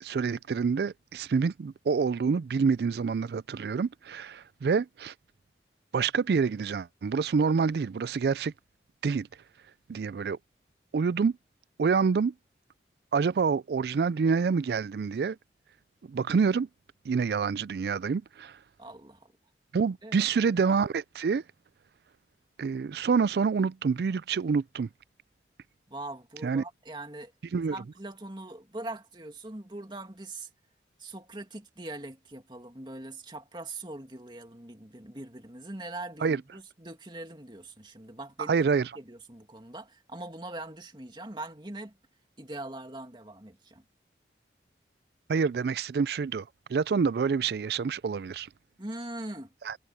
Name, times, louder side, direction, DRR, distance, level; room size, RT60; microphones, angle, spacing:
voice 1, 0.0-5.1 5.9-8.5 9.0-9.3 9.9-10.4 10.9-11.3 11.8-12.3 13.1-15.4 16.1-16.7 17.1-18.5 19.7-21.4 22.6-24.9 26.4-26.6 27.5-27.7 36.2-36.4 38.5-38.9 45.3-46.4 46.7-48.5 49.7-49.8, right 5 dB, 65° right, 0.3 m, -27 dB
voice 2, 18.8-19.3 20.0-20.3 25.9-27.3 27.7-30.5 31.0-38.6 39.0-42.0 42.4-43.8 48.8-49.5, right 2 dB, 25° right, 2.3 m, -42 dB
head